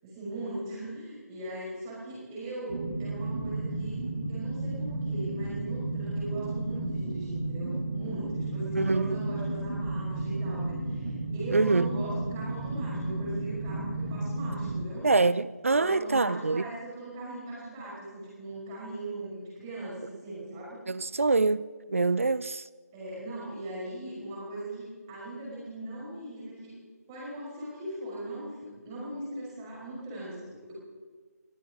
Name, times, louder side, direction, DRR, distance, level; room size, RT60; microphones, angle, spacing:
voice 1, 0.0-4.0 4.3-15.1 15.7-20.0 20.2-20.8 22.9-26.7 27.1-30.7, right 1 dB, 15° right, 5.8 m, -39 dB
sound 1, 2.7-14.9, right 2 dB, 30° right, 1.6 m, -33 dB
voice 2, 8.8-9.2 11.5-11.9 15.0-16.6 20.9-22.6, right 3 dB, 55° right, 0.6 m, -25 dB
21.0 x 15.5 x 3.9 m
figure-of-eight pair, 160°, 9 cm